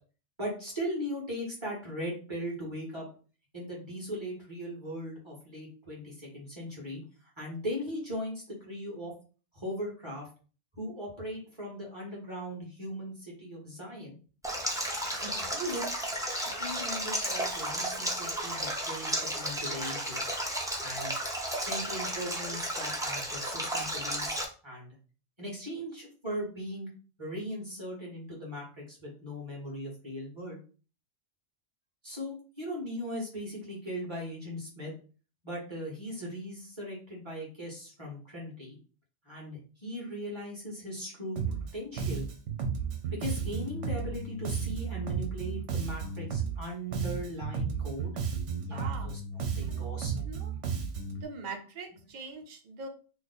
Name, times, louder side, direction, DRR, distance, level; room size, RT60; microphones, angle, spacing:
voice 1, 0.4-3.0 3.5-7.0 7.4-9.1 9.5-10.3 10.7-14.2 15.1-15.9 16.5-20.2 20.8-21.1 21.6-24.4 24.6-24.9 25.4-26.9 27.2-30.6 32.0-34.9 35.4-38.8 39.2-42.3 43.1-48.1 48.7-50.3, equal, 25° right, -4 dB, 1.5 m, -39 dB
Stream, 14.4-24.4, right 1 dB, 5° right, 0.4 m, -33 dB
Bass guitar, 41.4-41.7 42.0-46.7 46.9-51.2, right 6 dB, 75° right, 1.0 m, -33 dB
voice 2, 48.7-49.1 49.6-49.8 50.2-50.5 51.1-52.9, right 4 dB, 45° right, 4 dB, 0.7 m, -42 dB
3.1 x 2.0 x 4.0 m, 0.37 s
omnidirectional pair, 1.2 m